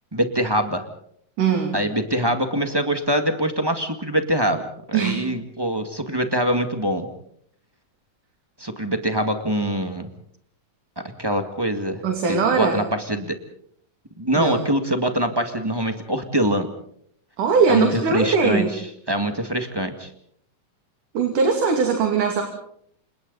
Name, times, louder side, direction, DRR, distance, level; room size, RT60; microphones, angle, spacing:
voice 1, 0.1-0.8 1.7-4.6 4.9-7.1 8.6-10.1 11.2-12.0 12.3-13.4 14.2-16.7 17.7-20.1, right 1 dB, 15° right, 6 dB, 0.9 m, -24 dB
voice 2, 1.4-1.8 4.9-5.3 12.0-12.8 14.4-14.6 17.4-18.7 21.1-22.4, right 5 dB, 65° right, 3 dB, 4.0 m, -20 dB
29.5 x 27.0 x 4.1 m, 0.66 s
omnidirectional pair, 4.0 m